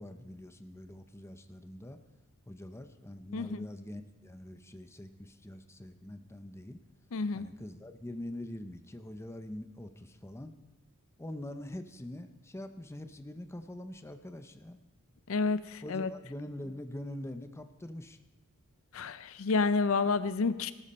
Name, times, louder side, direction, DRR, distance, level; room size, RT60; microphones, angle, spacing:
voice 1, 0.0-2.0 2.5-6.8 7.3-10.5 11.2-14.8 15.8-18.2, left 1 dB, 10° left, 8 dB, 0.6 m, -44 dB
voice 2, 3.3-3.7 7.1-7.5 15.3-16.1 18.9-20.7, left 4 dB, 70° left, 14 dB, 0.5 m, -29 dB
19.0 x 12.0 x 4.3 m, 1.1 s
head